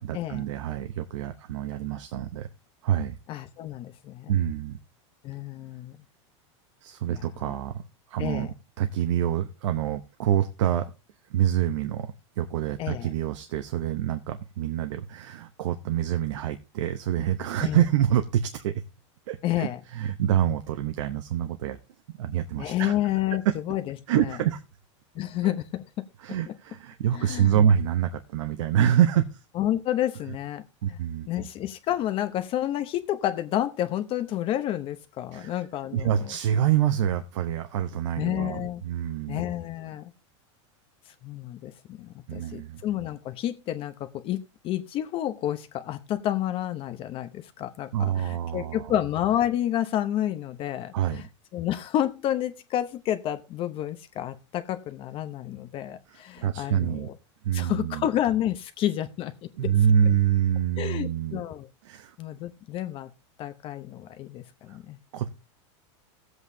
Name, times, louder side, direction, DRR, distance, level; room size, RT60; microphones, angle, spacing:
voice 1, 0.0-2.5 2.8-3.1 4.3-4.8 6.8-7.8 8.1-8.5 8.8-10.9 11.3-18.8 19.3-21.8 22.2-22.9 23.4-23.6 24.1-24.6 25.4-25.5 26.2-29.4 30.8-31.5 35.3-35.6 35.9-39.4 42.3-42.8 47.9-48.9 50.9-51.2 56.1-57.1 57.4-58.1 59.6-61.4 61.8-62.2 64.7-64.8 65.1-65.3, right 10 dB, 80° right, 8 dB, 0.9 m, -26 dB
voice 2, 3.3-4.3 5.2-6.0 7.1-7.5 8.2-8.5 12.8-13.1 17.6-17.8 19.4-19.8 22.6-24.3 25.1-25.8 27.1-27.6 29.5-30.6 30.9-31.0 31.3-36.3 38.2-38.8 39.3-40.1 41.2-51.3 51.5-57.2 57.5-59.3 59.6-59.7 60.8-61.7 62.2-63.1 63.4-65.0, left 12 dB, 35° left, 10 dB, 0.8 m, -30 dB
15.5 x 8.0 x 2.7 m, 0.29 s
supercardioid pair, 140°, 16 cm